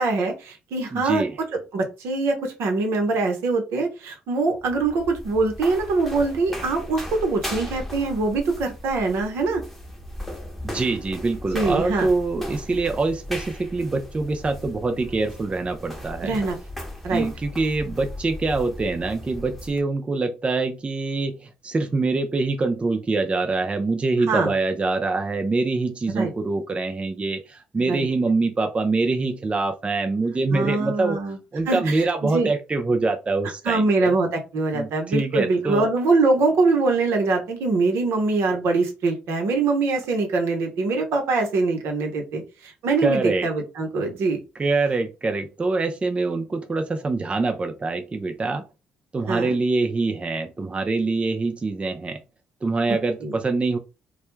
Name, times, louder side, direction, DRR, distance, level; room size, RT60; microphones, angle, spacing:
voice 1, 0.0-1.2 1.5-9.6 11.5-12.1 16.2-16.6 17.0-17.3 24.3-24.5 26.1-26.3 27.8-28.1 30.5-31.4 31.7-32.5 33.6-44.4 49.3-49.6 53.2-53.4, right 3 dB, 70° right, 0.8 m, -23 dB
voice 2, 0.9-1.4 10.6-16.3 17.1-31.2 31.5-34.1 34.7-35.9 43.0-43.5 44.6-48.6 49.1-52.2 52.6-53.8, right 3 dB, 25° right, 0.4 m, -24 dB
sound 1, 4.5-19.8, left 1 dB, 5° left, 0.9 m, -37 dB
2.2 x 2.1 x 3.0 m
supercardioid pair, 60°, 4 cm